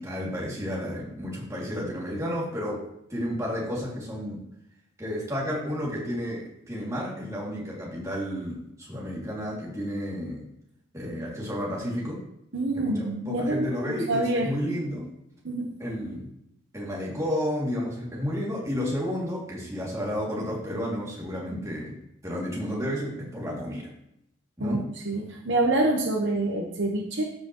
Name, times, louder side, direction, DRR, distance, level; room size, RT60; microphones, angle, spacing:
voice 1, 0.0-2.8 3.1-4.4 5.0-10.4 10.9-12.2 12.7-15.1 15.8-16.3 16.7-22.0 22.2-23.9 24.6-24.9, equal, 15° right, -5 dB, 2.5 m, -31 dB
voice 2, 12.5-14.5 15.4-15.7 24.6-24.8 25.0-27.2, right 2 dB, 60° right, 1 dB, 1.0 m, -26 dB
14.0 x 5.6 x 3.1 m, 0.78 s
head